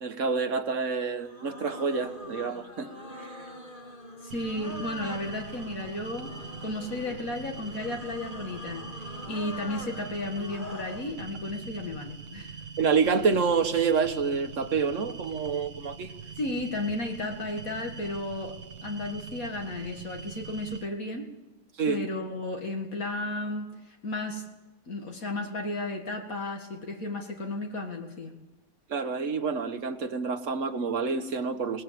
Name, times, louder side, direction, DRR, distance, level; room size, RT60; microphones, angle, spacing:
voice 1, 0.0-2.9 3.2-3.4 12.8-16.1 21.8-22.0 28.9-31.8, right 5 dB, 55° right, 8 dB, 1.6 m, -28 dB
sound 1, 1.2-11.1, left 2 dB, 35° left, 2.2 m, -43 dB
voice 2, 4.2-6.3 6.6-12.6 16.4-21.3 21.9-24.5 24.9-28.3, left 2 dB, 65° left, 2 dB, 2.5 m, -34 dB
sound 2, 4.3-20.9, right 5 dB, 80° right, 1.6 m, -43 dB
22.0 x 19.5 x 7.6 m, 1.1 s
omnidirectional pair, 1.6 m